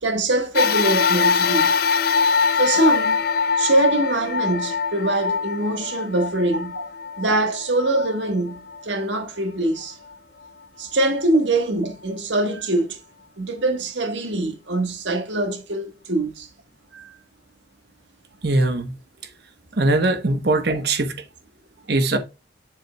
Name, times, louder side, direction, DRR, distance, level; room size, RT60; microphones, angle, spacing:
voice 1, 0.0-1.7 2.6-3.2 3.6-6.8 7.2-10.0 10.8-13.0 13.4-16.5 16.9-17.1, right 2 dB, 85° right, 1.5 m, -23 dB
sound 1, 0.5-9.2 9.8-9.9 11.0-11.1, left 5 dB, 55° left, 0.5 m, -23 dB
voice 2, 18.4-18.9 19.7-21.2 21.9-22.2, right 2 dB, 60° right, 1.1 m, -20 dB
7.3 x 7.0 x 2.3 m
head